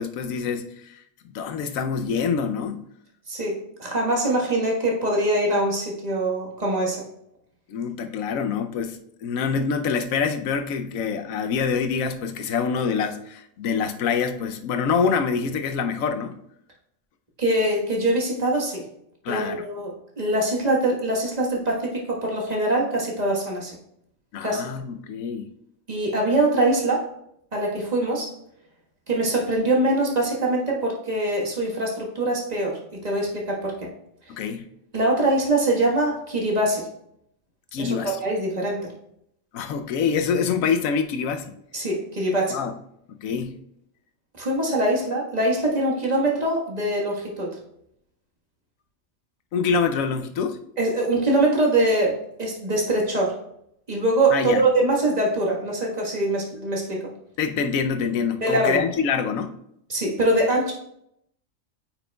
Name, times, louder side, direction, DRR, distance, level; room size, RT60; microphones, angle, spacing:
voice 1, 0.0-2.9 7.7-16.3 19.2-19.7 24.3-25.5 34.3-34.7 37.7-38.2 39.5-41.5 42.5-42.7 43.1-43.5 49.5-50.6 54.3-54.6 57.4-59.6, left 6 dB, 85° left, 7 dB, 1.1 m, -26 dB
voice 2, 3.3-7.0 17.4-18.8 19.3-23.7 24.4-24.7 25.9-27.1 27.5-28.3 29.1-33.7 34.9-36.8 37.8-38.0 38.2-38.9 41.7-42.6 44.4-47.6 50.8-53.4 53.9-57.0 58.4-58.8 59.9-60.7, right 1 dB, 30° right, -2 dB, 1.5 m, -23 dB
8.9 x 6.0 x 2.3 m, 0.77 s
omnidirectional pair, 1.4 m